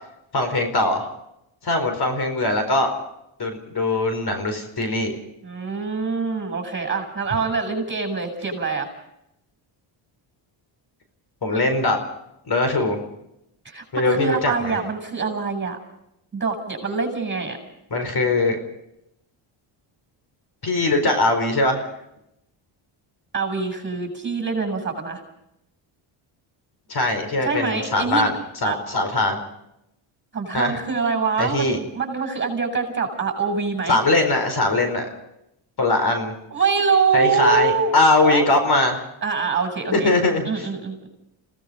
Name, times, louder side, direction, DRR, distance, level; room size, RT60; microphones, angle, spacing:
voice 1, 0.3-1.1 1.6-2.9 3.4-5.2 11.4-12.0 12.5-13.0 13.9-14.8 17.9-18.6 20.6-21.9 26.9-28.3 28.6-29.4 30.5-30.8 31.4-31.8 33.9-35.1 35.8-36.3 37.1-39.0 39.9-40.7, left 2 dB, 50° left, 7 dB, 4.7 m, -21 dB
voice 2, 5.4-8.9 13.6-15.8 16.3-17.6 23.3-25.2 27.4-28.2 28.6-28.8 30.3-34.0 36.5-38.0 38.2-38.5 39.2-40.1 40.4-41.1, right 5 dB, 20° right, 5 dB, 7.7 m, -24 dB
29.5 x 18.5 x 5.3 m, 0.82 s
cardioid pair, 105°, 50 cm